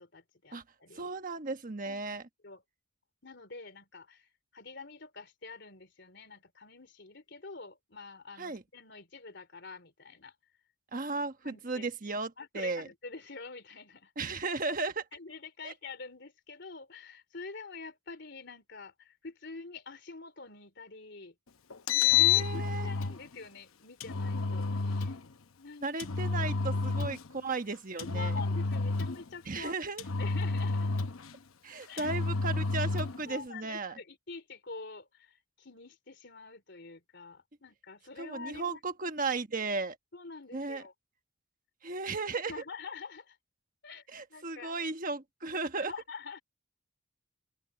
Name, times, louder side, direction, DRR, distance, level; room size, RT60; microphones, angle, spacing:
voice 1, 0.0-1.1 1.8-2.2 2.4-2.6 3.2-10.3 11.4-11.9 12.4-14.1 15.1-21.3 21.9-25.2 25.6-25.9 28.0-29.8 30.2-30.9 31.9-32.1 33.3-38.8 40.1-40.9 42.5-43.4 43.8-44.0 44.3-44.7 45.8-46.4, left 4 dB, 55° left, 3.5 m, -46 dB
voice 2, 0.9-2.2 8.4-8.6 10.9-12.9 14.2-15.1 15.6-15.7 22.2-22.9 25.8-28.4 29.5-30.0 31.6-34.0 38.2-40.0 40.5-40.8 41.8-42.5 44.1-45.9, right 3 dB, 40° right, 1.3 m, -35 dB
Engine, 21.7-23.2 24.0-25.2 26.0-27.3 28.0-29.3 30.0-31.3 32.0-33.2, left 6 dB, 90° left, 0.9 m, -29 dB
open air
head